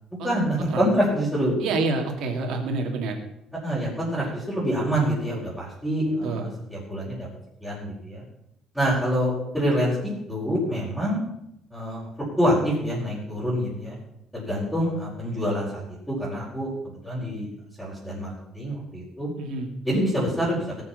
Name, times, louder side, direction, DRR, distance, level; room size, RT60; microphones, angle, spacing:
voice 1, 0.2-1.5 3.6-7.3 7.6-8.2 8.7-11.2 11.7-12.1 12.4-14.0 14.3-17.5 17.8-19.3 19.8-20.6, equal, ahead, -9 dB, 5.1 m, -26 dB
voice 2, 1.6-3.2 6.2-6.5 19.4-19.7, right 3 dB, 70° right, 3 dB, 2.8 m, -27 dB
18.0 x 7.6 x 5.7 m, 0.81 s
cardioid pair, 145°, 0 cm